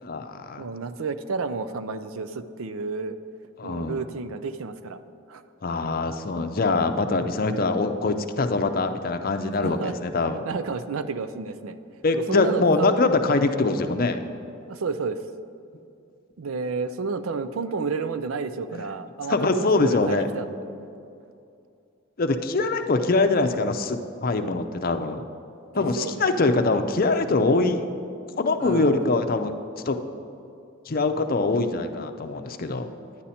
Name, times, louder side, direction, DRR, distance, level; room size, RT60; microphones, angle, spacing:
voice 1, 0.0-0.6 3.6-4.0 5.6-10.4 12.0-14.2 18.7-18.8 19.3-20.3 22.2-25.2 25.7-27.8 28.4-29.5 29.9-30.0 30.9-32.9, left 3 dB, 45° left, 7 dB, 0.5 m, -23 dB
voice 2, 0.6-3.2 3.6-5.0 5.3-5.4 9.6-10.0 10.4-11.8 12.3-12.9 14.7-15.2 16.4-20.5 25.7-26.4 28.6-29.1, right 4 dB, 80° right, 12 dB, 0.5 m, -31 dB
10.5 x 9.8 x 4.2 m, 2.6 s
head